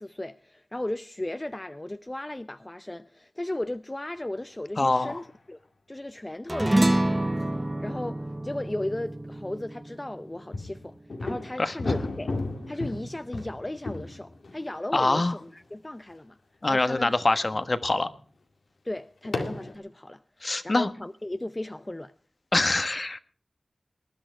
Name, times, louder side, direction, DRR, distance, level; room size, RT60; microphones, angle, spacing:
voice 1, 0.0-5.6 5.9-7.0 7.8-12.3 12.7-16.4 16.7-17.1 18.8-22.1, left 1 dB, 25° left, 0.6 m, -35 dB
voice 2, 4.8-5.2 11.6-11.7 14.9-15.3 16.6-18.1 20.4-20.9 22.5-23.2, left 2 dB, 50° left, 1.2 m, -24 dB
sound 1, 4.9-5.3 10.5-15.4 16.1-16.2 16.8-17.3 18.0-18.2 19.2-19.7, left 2 dB, 85° left, 2.1 m, -34 dB
sound 2, 6.5-11.2, right 1 dB, 25° right, 0.6 m, -27 dB
20.0 x 11.0 x 4.6 m
cardioid pair, 40°, 0 cm